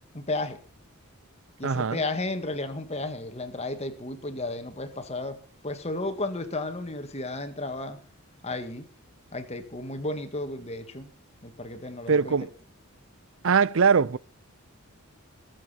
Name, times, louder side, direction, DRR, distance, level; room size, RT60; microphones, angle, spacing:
voice 1, 0.1-0.6 1.6-8.0 8.4-8.9 9.3-11.1 11.4-12.4, left 2 dB, 30° left, 1.9 m, -33 dB
voice 2, 1.6-2.0 12.1-12.5 13.4-14.2, right 5 dB, 60° right, 0.6 m, -21 dB
22.0 x 7.6 x 5.8 m
head